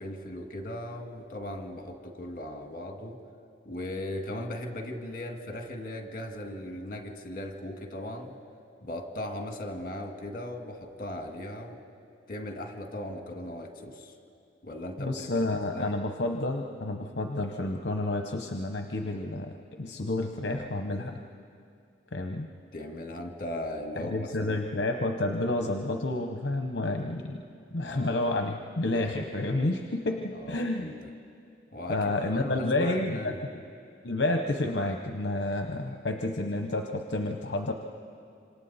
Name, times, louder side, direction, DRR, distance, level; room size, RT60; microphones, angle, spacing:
voice 1, 0.0-3.2 3.7-8.3 8.8-11.8 12.3-14.1 14.6-15.9 22.7-24.6 27.8-28.4 30.3-30.9 31.7-32.0 32.3-33.4, left 1 dB, 45° left, 3 dB, 1.8 m, -38 dB
voice 2, 15.0-19.5 19.8-21.2 22.1-22.5 24.0-27.4 27.7-30.9 31.9-33.2 34.0-37.7, left 2 dB, 65° left, 4 dB, 0.9 m, -30 dB
27.0 x 26.5 x 4.2 m, 2.4 s
head